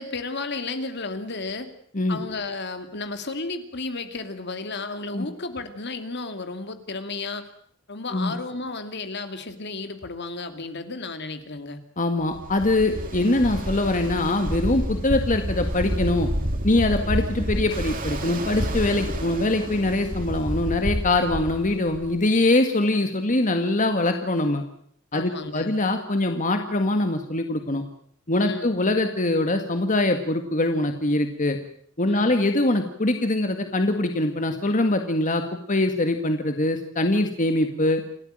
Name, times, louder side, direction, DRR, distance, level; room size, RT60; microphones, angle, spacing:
voice 1, 0.0-1.7 2.1-7.5 7.9-11.8 25.1-25.7 28.4-28.7 32.1-32.3, left 3 dB, 55° left, 8 dB, 2.4 m, -33 dB
voice 2, 12.0-16.3 16.6-24.6 25.1-27.8 28.3-31.6 32.0-38.0, left 2 dB, 40° left, 6 dB, 1.9 m, -23 dB
Ocean, 12.3-22.2, equal, 45° right, 3.3 m, -29 dB
29.0 x 13.5 x 8.9 m, 0.63 s
head